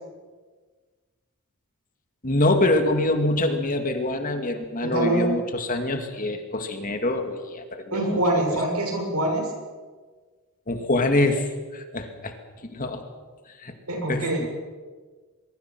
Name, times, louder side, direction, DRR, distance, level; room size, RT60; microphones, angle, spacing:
voice 1, 2.2-8.2 8.5-8.6 10.7-12.3 12.6-13.0 13.6-13.7 14.1-14.5, left 2 dB, 40° left, 6 dB, 2.3 m, -25 dB
voice 2, 4.8-5.3 7.9-9.5 13.9-14.5, right 1 dB, 85° right, 1 dB, 7.7 m, -24 dB
23.5 x 23.0 x 6.1 m, 1.4 s
head